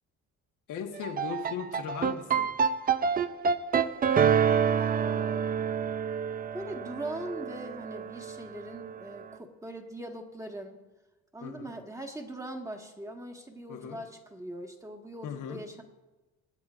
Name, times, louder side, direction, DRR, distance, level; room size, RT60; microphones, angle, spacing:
voice 1, 0.7-2.5 11.4-11.7 13.7-14.0 15.2-15.6, left 7 dB, 85° left, 3 dB, 1.4 m, -38 dB
sound 1, 0.9-9.2, right 7 dB, 30° right, 0.5 m, -28 dB
voice 2, 4.7-5.5 6.5-10.8 11.3-15.8, right 1 dB, 10° right, 3 dB, 1.7 m, -41 dB
24.0 x 8.5 x 2.5 m, 1.1 s
cardioid pair, 90°, 30 cm